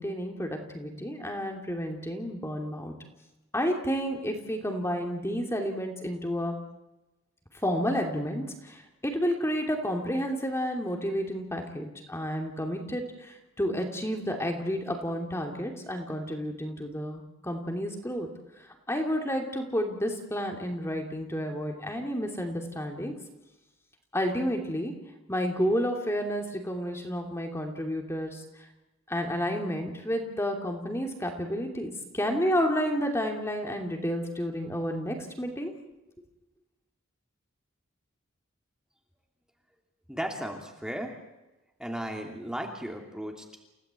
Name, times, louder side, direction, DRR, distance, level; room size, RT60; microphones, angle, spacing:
voice 1, 0.0-2.9 3.5-6.6 7.6-18.3 18.6-23.1 24.1-24.9 25.3-28.4 29.1-35.7, equal, 15° left, 3 dB, 2.8 m, -31 dB
voice 2, 40.1-41.1 41.8-43.6, equal, 5° right, 2 dB, 2.8 m, -35 dB
29.5 x 17.0 x 8.3 m, 1.0 s
head